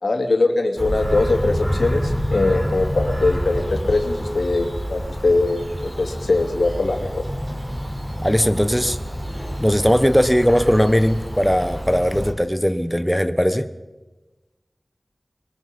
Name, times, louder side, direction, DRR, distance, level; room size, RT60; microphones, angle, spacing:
voice 1, 0.0-7.2, left 2 dB, 90° left, 3 dB, 2.8 m, -21 dB
Bird vocalization bird call bird song, 0.8-12.3, equal, 15° right, 4.2 m, -28 dB
voice 2, 8.2-9.0 9.6-13.7, equal, ahead, 9 dB, 1.1 m, -18 dB
22.5 x 22.0 x 5.4 m, 1.2 s
wide cardioid pair, 65°, 0 cm